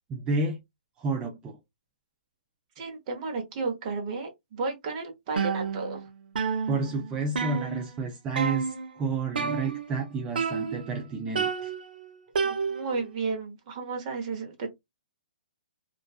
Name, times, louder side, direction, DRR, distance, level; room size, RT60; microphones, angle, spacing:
voice 1, 0.1-0.6 1.0-1.6 6.7-11.7, right 3 dB, 15° right, 0.4 m, -30 dB
voice 2, 2.8-6.0 12.4-14.7, right 4 dB, 40° right, 0.9 m, -33 dB
sound 1, 5.4-6.1 6.4-8.0 8.4-8.9 9.4-10.0 10.4-11.0 11.4-13.1, right 5 dB, 75° right, 0.5 m, -30 dB
2.5 x 2.2 x 2.3 m
hypercardioid pair, 140°, 5 cm